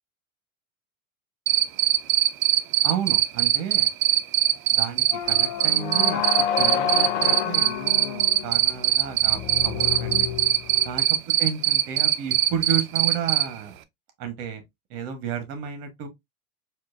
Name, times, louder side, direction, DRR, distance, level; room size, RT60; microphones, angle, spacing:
Cricket, 1.5-13.4, right 12 dB, 70° right, 0.6 m, -20 dB
voice 1, 2.8-3.9 4.7-10.4 10.8-11.0 11.4-13.8 14.2-14.6 14.9-16.1, right 7 dB, 50° right, 1.4 m, -32 dB
sound 1, 5.1-11.1, left 9 dB, 65° left, 0.7 m, -29 dB
4.5 x 2.6 x 2.5 m
hypercardioid pair, 95°, 42 cm